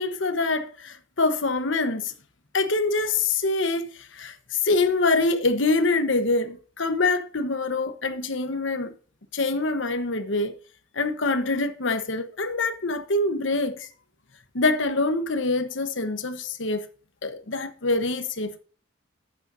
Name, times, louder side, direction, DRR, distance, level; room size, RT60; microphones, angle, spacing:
voice 1, 0.0-2.1 2.5-8.9 9.3-10.5 10.9-13.9 14.5-16.9 17.2-18.6, left 3 dB, 70° left, 1.1 m, -25 dB
11.5 x 8.9 x 2.7 m
head